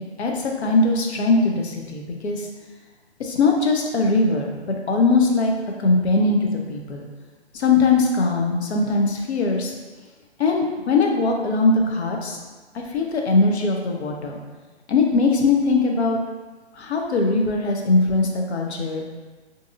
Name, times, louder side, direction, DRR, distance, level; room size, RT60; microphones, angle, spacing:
voice 1, 0.2-2.5 3.2-5.5 5.8-7.1 7.5-9.7 10.4-12.4 12.7-14.4 14.9-16.2 16.8-19.0, left 3 dB, 75° left, 1 dB, 0.6 m, -21 dB
2.6 x 2.6 x 2.5 m, 1.3 s
hypercardioid pair, 160°, 33 cm